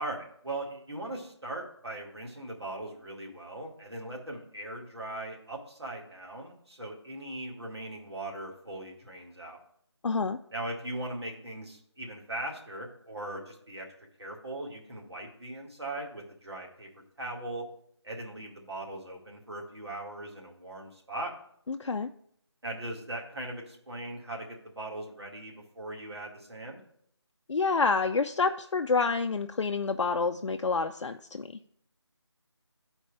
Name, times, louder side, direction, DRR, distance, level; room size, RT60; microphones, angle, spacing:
voice 1, 0.0-9.6 10.5-13.9 14.2-17.7 18.0-21.3 22.6-26.8, right 1 dB, 65° right, 0 dB, 2.1 m, -39 dB
voice 2, 10.0-10.4 21.7-22.1 27.5-31.5, left 4 dB, 85° left, 6 dB, 0.4 m, -28 dB
12.5 x 4.4 x 3.3 m, 0.68 s
figure-of-eight pair, 180°, 15 cm